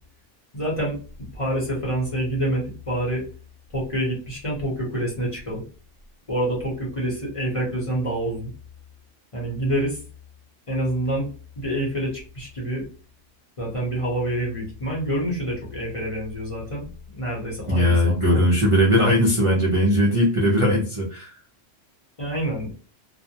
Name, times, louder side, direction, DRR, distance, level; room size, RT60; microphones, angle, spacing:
voice 1, 0.5-1.0 1.3-3.2 3.7-5.6 6.3-8.5 9.3-10.0 10.7-11.3 11.6-12.8 13.6-18.4 22.2-22.7, right 1 dB, 30° left, -4 dB, 0.8 m, -27 dB
voice 2, 17.7-21.3, equal, 35° right, -4 dB, 0.5 m, -19 dB
2.4 x 2.1 x 2.8 m, 0.38 s
omnidirectional pair, 1.3 m